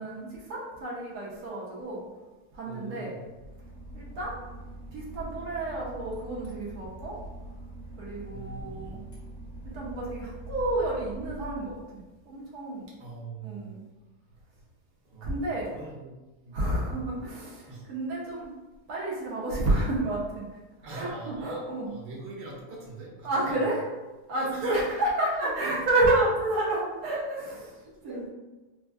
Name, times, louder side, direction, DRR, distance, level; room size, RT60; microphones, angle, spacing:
voice 1, 0.0-2.0 2.5-3.2 3.9-4.4 4.9-7.2 8.0-9.0 9.6-12.9 13.4-13.8 15.2-15.7 16.5-18.5 18.9-20.5 20.9-21.9 23.2-23.8 24.3-27.8 28.0-28.3, right 2 dB, 70° right, -5 dB, 1.3 m, -30 dB
voice 2, 2.6-3.2 8.3-9.0 13.0-13.7 15.1-16.1 16.4-16.6 16.9-17.2 17.7-17.8 20.8-21.6 21.9-23.6 24.3-24.8 25.4-25.7 27.8-28.3, right 2 dB, 90° right, -5 dB, 1.4 m, -39 dB
Boat Water vehicle / Engine, 3.3-12.2, right 1 dB, 70° left, 1.3 m, -43 dB
4.1 x 2.4 x 2.3 m, 1.1 s
omnidirectional pair, 1.6 m